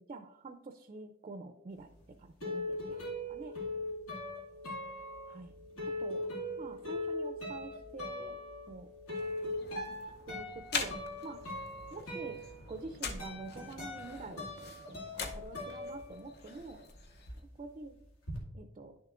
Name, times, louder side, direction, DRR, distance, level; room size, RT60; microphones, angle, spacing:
voice 1, 0.0-1.9 2.2-2.8 3.3-3.5 5.3-5.5 6.0-6.2 6.6-8.4 8.7-8.9 9.9-10.0 10.3-11.0 11.2-11.4 11.9-12.4 12.7-14.6 14.9-16.8 17.6-18.0 18.5-19.0, right 3 dB, 30° right, 7 dB, 0.4 m, -46 dB
sound 1, 1.8-16.7 16.9-18.4, left 1 dB, 90° left, 2.2 m, -41 dB
sound 2, 9.1-17.4, left 4 dB, 50° left, 0.7 m, -44 dB
10.5 x 6.5 x 2.5 m, 0.85 s
head